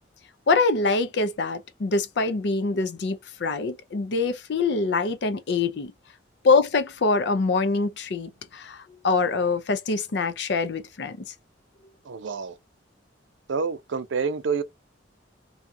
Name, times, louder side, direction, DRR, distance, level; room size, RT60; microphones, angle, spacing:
voice 1, 0.5-5.9 6.4-11.2, left 3 dB, 60° left, 0.5 m, -24 dB
voice 2, 12.0-12.6 13.5-14.6, right 5 dB, 80° right, 0.5 m, -28 dB
2.7 x 2.4 x 2.6 m
head